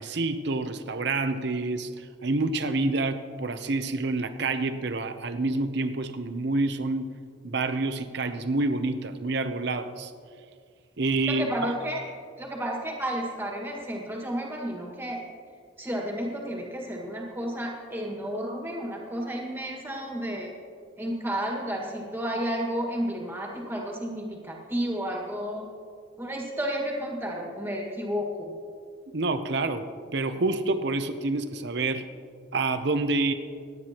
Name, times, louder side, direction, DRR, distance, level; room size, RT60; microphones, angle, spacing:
voice 1, 0.0-7.1 7.4-10.1 11.0-11.7 29.1-32.1 32.5-33.3, right 3 dB, 55° right, 9 dB, 0.7 m, -28 dB
voice 2, 11.3-12.0 12.4-15.2 15.8-20.5 21.0-25.7 26.2-28.5, equal, 10° right, -1 dB, 1.7 m, -32 dB
25.5 x 9.5 x 3.0 m, 2.2 s
head